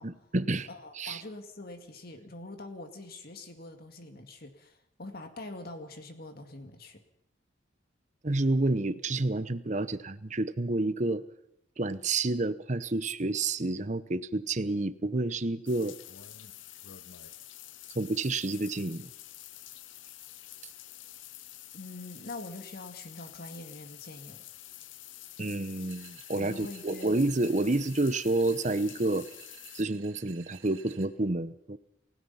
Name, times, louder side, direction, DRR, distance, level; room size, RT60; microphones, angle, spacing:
voice 1, 0.0-0.7 0.9-1.2 8.2-11.2 11.8-16.0 17.9-19.1 25.4-29.3 29.7-31.8, right 2 dB, 35° right, 13 dB, 0.9 m, -29 dB
voice 2, 0.7-7.0 21.7-24.4 26.3-27.2, left 2 dB, 50° left, 6 dB, 2.1 m, -44 dB
sound 1, 15.7-29.8, left 13 dB, 70° left, 0.8 m, -48 dB
sound 2, 25.9-31.1, right 10 dB, 80° right, 2.9 m, -54 dB
29.5 x 16.5 x 5.7 m, 0.78 s
head